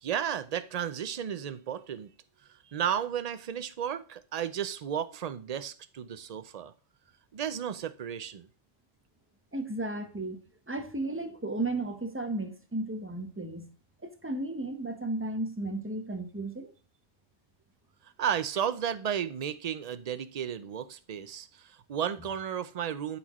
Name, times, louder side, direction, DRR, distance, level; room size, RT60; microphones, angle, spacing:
voice 1, 0.0-2.1 2.5-6.7 7.3-8.5 18.0-23.2, right 9 dB, 55° right, 0.4 m, -33 dB
voice 2, 9.5-10.4 10.7-13.7 14.0-16.7, right 2 dB, 15° right, 0.7 m, -34 dB
12.5 x 4.3 x 3.0 m
omnidirectional pair, 1.3 m